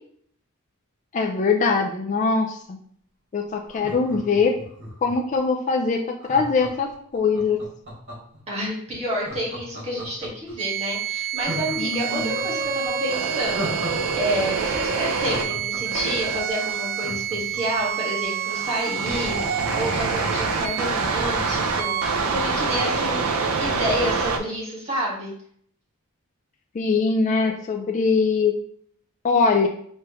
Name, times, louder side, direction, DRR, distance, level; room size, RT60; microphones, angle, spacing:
voice 1, 1.1-2.8 3.3-4.6 5.0-7.6 11.8-12.4 26.7-28.5 29.2-29.7, left 4 dB, 35° left, 2 dB, 0.3 m, -22 dB
Laughter, 3.6-5.3 6.2-8.4 9.1-10.5 10.9-11.0 11.4-14.1 14.4-14.5 14.9-17.8 18.2-18.3 18.5-20.3 20.6-20.7, equal, 60° right, 1.9 m, -37 dB
voice 2, 8.5-25.3, equal, 30° right, -5 dB, 1.6 m, -29 dB
sound 1, 10.6-24.4, right 5 dB, 80° right, 0.5 m, -26 dB
4.6 x 3.2 x 3.0 m, 0.63 s
head